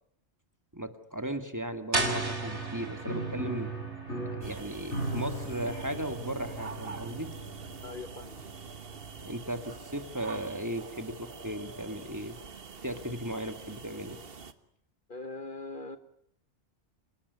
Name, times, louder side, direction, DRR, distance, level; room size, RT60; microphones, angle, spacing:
voice 1, 0.7-3.7 4.4-7.3 9.2-12.4 12.8-14.2, right 1 dB, 15° right, 8 dB, 2.1 m, -36 dB
Piano, 1.9-10.4, right 2 dB, 80° left, 7.7 m, -39 dB
sound 1, 1.9-7.6, right 2 dB, 80° right, 3.6 m, -37 dB
sound 2, 4.4-14.5, right 4 dB, 55° right, 1.5 m, -45 dB
voice 2, 7.8-8.4 15.1-16.0, left 3 dB, 45° left, 10 dB, 1.5 m, -41 dB
28.0 x 19.5 x 9.6 m, 0.72 s
omnidirectional pair, 1.2 m